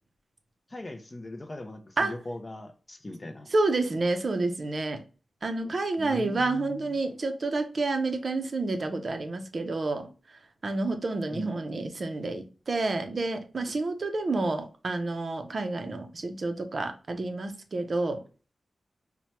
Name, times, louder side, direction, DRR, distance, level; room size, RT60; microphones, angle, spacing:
voice 1, 0.7-3.5 6.0-7.0 11.3-11.7, left 2 dB, 25° left, 0.4 m, -40 dB
voice 2, 3.5-5.0 5.4-10.1 10.6-18.2, right 2 dB, 45° right, 0.5 m, -29 dB
4.3 x 2.1 x 2.9 m
wide cardioid pair, 145°, 0 cm